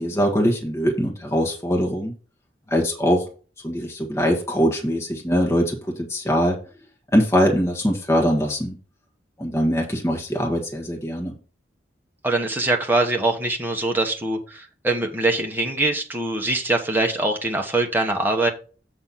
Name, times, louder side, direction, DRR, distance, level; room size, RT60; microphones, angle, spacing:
voice 1, 0.0-2.1 2.7-3.3 3.6-6.6 7.1-8.8 9.4-11.3, equal, 15° left, 0 dB, 1.4 m, -22 dB
voice 2, 12.2-18.5, right 2 dB, 10° right, 2 dB, 1.2 m, -23 dB
7.8 x 4.1 x 5.7 m, 0.37 s
head